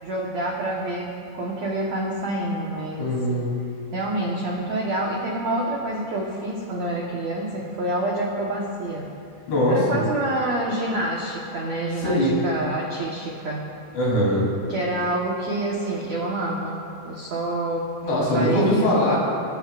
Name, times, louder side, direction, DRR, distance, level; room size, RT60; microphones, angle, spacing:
voice 1, 0.0-3.1 3.9-9.2 9.7-13.7 14.7-17.9 18.3-19.2, right 1 dB, 70° right, -3 dB, 1.7 m, -27 dB
voice 2, 3.0-3.5 9.5-10.0 12.0-12.3 13.9-14.5 18.0-19.2, equal, 70° left, -5 dB, 5.6 m, -21 dB
24.0 x 13.5 x 2.5 m, 2.5 s
omnidirectional pair, 5.0 m